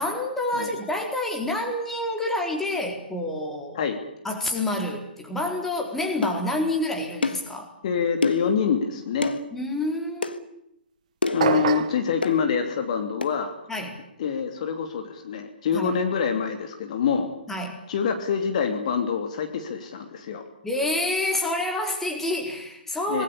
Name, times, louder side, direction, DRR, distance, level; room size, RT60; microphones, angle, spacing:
voice 1, 0.0-3.8 4.2-7.7 9.5-10.6 13.7-14.0 15.7-15.9 17.5-17.8 20.6-23.2, left 1 dB, 5° left, 2 dB, 4.2 m, -28 dB
sound 1, 6.2-6.4 7.2-7.5 8.2-8.5 9.2-9.4 10.2-10.4 11.2-11.5 12.2-12.4 13.2-13.3, left 3 dB, 70° left, 1.8 m, -26 dB
voice 2, 7.8-9.4 11.3-13.5 14.2-17.3 17.9-20.4 23.1-23.2, left 6 dB, 45° left, 5 dB, 3.0 m, -26 dB
sound 2, 11.4-12.0, right 8 dB, 45° right, 1.6 m, -24 dB
26.5 x 20.5 x 6.9 m, 0.79 s
figure-of-eight pair, 125°, 5 cm